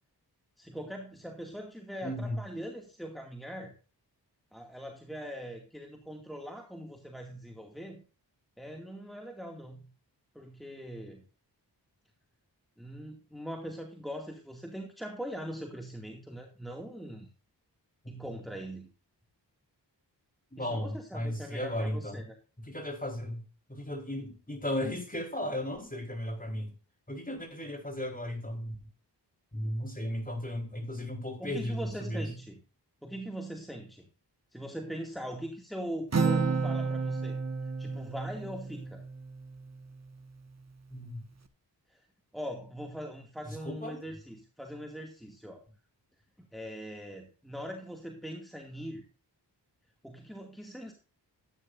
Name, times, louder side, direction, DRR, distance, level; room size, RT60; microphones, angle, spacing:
voice 1, 0.6-3.7 4.5-8.0 8.6-9.9 10.3-11.2 12.8-17.3 18.1-18.9 20.6-22.2 31.4-32.6 33.0-34.1 34.5-37.4 37.8-39.0 41.9-42.1 42.3-45.6 46.4-49.0 50.0-50.9, equal, ahead, 2 dB, 2.3 m, -41 dB
voice 2, 2.0-2.4 18.0-18.3 20.5-22.2 22.7-23.4 23.7-26.7 27.1-28.8 29.5-32.3 40.9-41.2 43.5-44.0, left 1 dB, 20° left, 3 dB, 4.4 m, -35 dB
Acoustic guitar, 36.1-39.8, right 4 dB, 40° right, 1.4 m, -31 dB
14.0 x 9.6 x 2.6 m, 0.35 s
cardioid pair, 50°, 43 cm